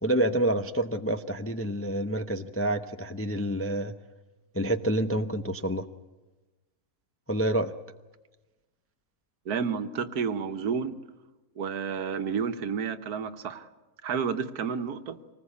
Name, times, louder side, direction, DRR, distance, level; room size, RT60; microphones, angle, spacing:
voice 1, 0.0-3.9 4.5-5.9 7.3-7.7, right 1 dB, 20° left, 7 dB, 0.4 m, -28 dB
voice 2, 9.5-11.0 11.6-13.6 14.0-15.2, right 6 dB, 80° right, 9 dB, 1.6 m, -30 dB
25.0 x 19.5 x 8.5 m, 1.2 s
omnidirectional pair, 1.6 m